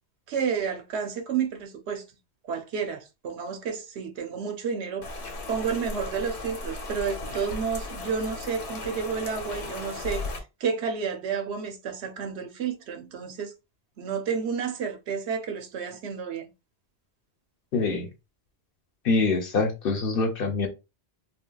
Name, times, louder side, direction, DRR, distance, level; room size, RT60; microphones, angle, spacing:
voice 1, 0.3-2.0 2.5-13.5 14.0-16.5, right 6 dB, 80° right, 0.9 m, -31 dB
Rain, 5.0-10.4, left 2 dB, 85° left, 1.1 m, -36 dB
voice 2, 17.7-18.1 19.0-20.7, left 3 dB, 60° left, 0.9 m, -25 dB
3.5 x 2.2 x 2.2 m
omnidirectional pair, 1.1 m